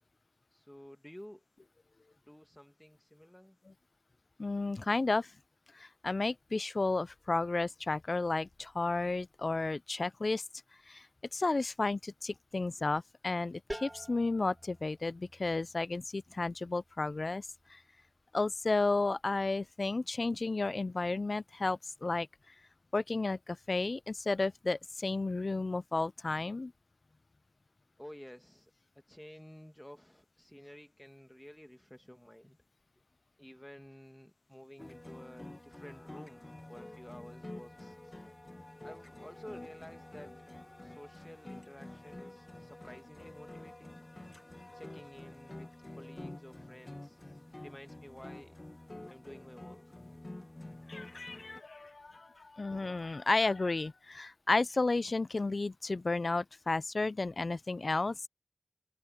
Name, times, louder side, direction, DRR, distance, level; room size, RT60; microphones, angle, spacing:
voice 1, 0.5-1.4 2.3-3.6 28.0-28.7 29.1-32.6 33.4-38.0 38.8-40.4 40.8-44.0 44.7-47.2 47.6-48.5 49.1-49.8, equal, 10° left, 2.1 m, -52 dB
voice 2, 4.4-5.3 5.7-10.4 10.9-11.1 11.3-17.8 18.3-22.3 22.9-26.7 50.9-58.3, left 3 dB, 65° left, 0.4 m, -32 dB
sound 1, 13.7-19.2, right 1 dB, 20° right, 2.2 m, -50 dB
sound 2, 34.8-51.6, left 1 dB, 35° left, 0.8 m, -49 dB
wide cardioid pair, 65°, 0 cm